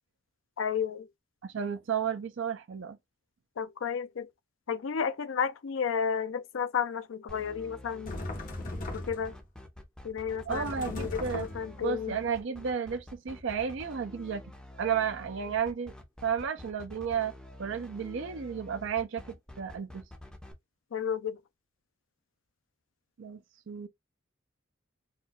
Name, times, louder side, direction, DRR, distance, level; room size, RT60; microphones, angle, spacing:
voice 1, 0.6-1.1 3.6-4.3 4.7-8.2 8.9-9.3 10.0-12.1 20.9-21.4, left 7 dB, 70° left, 0.4 m, -32 dB
voice 2, 1.4-3.0 10.5-11.5 11.8-14.4 14.8-15.9 16.2-17.3 17.6-20.0 23.2-23.4 23.7-23.9, right 7 dB, 65° right, 0.5 m, -32 dB
sound 1, 7.3-20.5, left 1 dB, 5° left, 0.7 m, -48 dB
sound 2, 8.1-9.4 10.5-11.8, left 1 dB, 45° left, 1.1 m, -38 dB
4.3 x 2.4 x 2.2 m
head